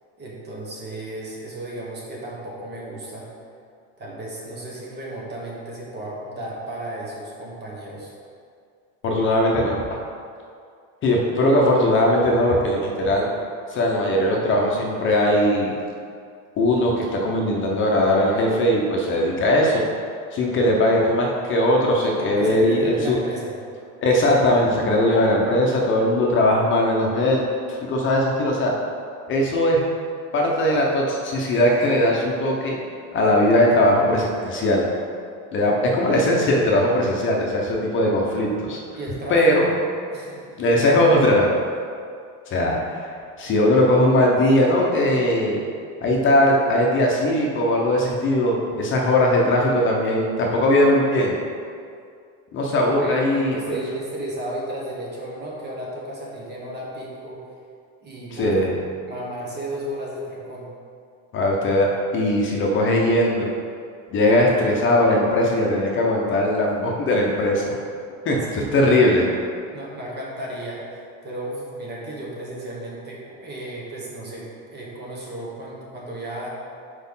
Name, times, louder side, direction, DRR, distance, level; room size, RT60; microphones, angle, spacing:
voice 1, 0.2-3.3 4.0-8.1 22.2-23.5 24.1-24.2 38.9-39.5 40.1-40.6 52.8-57.4 58.0-58.6 59.1-60.7 68.5-69.3 69.7-76.5, right 1 dB, 30° right, -3 dB, 1.3 m, -34 dB
voice 2, 9.0-9.8 11.0-13.3 13.7-15.7 16.6-19.8 20.3-23.2 24.0-28.8 29.3-29.8 30.3-32.8 33.1-34.9 35.5-38.8 39.3-39.6 40.6-41.5 42.5-43.1 43.4-45.6 46.0-51.3 52.5-53.8 58.3-58.7 61.3-63.5 64.1-67.7 68.2-69.2, left 1 dB, 35° left, -1 dB, 0.8 m, -19 dB
4.9 x 4.3 x 5.5 m, 2.3 s
cardioid pair, 150°, 33 cm